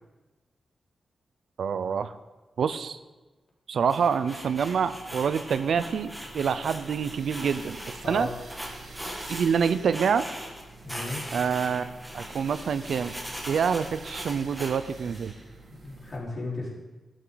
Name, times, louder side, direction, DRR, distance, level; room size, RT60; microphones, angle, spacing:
voice 1, 1.6-2.1 2.6-3.0 3.7-8.3 9.3-10.2 11.3-13.1 13.5-15.3, right 6 dB, 75° right, 12 dB, 0.6 m, -27 dB
sound 1, 3.9-8.0 8.5-10.6 10.9-15.3, equal, 5° right, 2.1 m, -40 dB
sound 2, 4.2-16.2, right 2 dB, 55° right, 2.6 m, -47 dB
voice 2, 10.8-11.2 15.7-16.7, left 2 dB, 45° left, -5 dB, 4.5 m, -35 dB
14.0 x 12.5 x 4.0 m, 1.2 s
wide cardioid pair, 135°, 0 cm